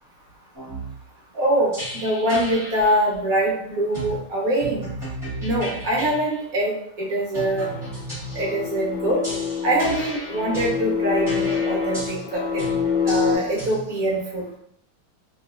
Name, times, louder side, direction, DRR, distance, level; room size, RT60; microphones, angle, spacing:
sound 1, 0.5-1.0 1.7-2.9 3.9-4.2 4.6-6.2 7.3-8.6 9.2-10.8 11.3-12.2 12.6-12.8 13.1-13.8, right 1 dB, 20° right, 1.1 m, -34 dB
voice 1, 1.3-4.9 5.4-6.7 7.0-7.7 8.3-9.2 9.6-12.6 13.0-14.5, right 1 dB, 55° right, -4 dB, 1.1 m, -23 dB
sound 2, 7.4-13.4, left 6 dB, 75° left, 1.2 m, -26 dB
3.3 x 2.8 x 2.3 m, 0.66 s
omnidirectional pair, 2.2 m